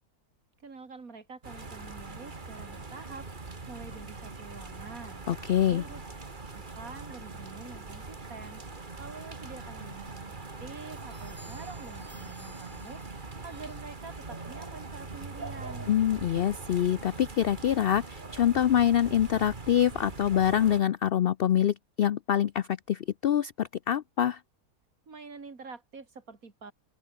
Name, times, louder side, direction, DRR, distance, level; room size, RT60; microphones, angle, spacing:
voice 1, 0.6-5.2 5.7-6.0 6.5-15.9 25.1-26.7, right 4 dB, 65° right, 3.1 m, -47 dB
sound 1, 1.4-20.8, right 3 dB, 30° right, 2.1 m, -42 dB
voice 2, 5.3-5.8 15.9-24.4, left 10 dB, 75° left, 0.5 m, -25 dB
sound 2, 10.2-14.2, equal, 5° right, 7.7 m, -59 dB
open air
omnidirectional pair, 1.6 m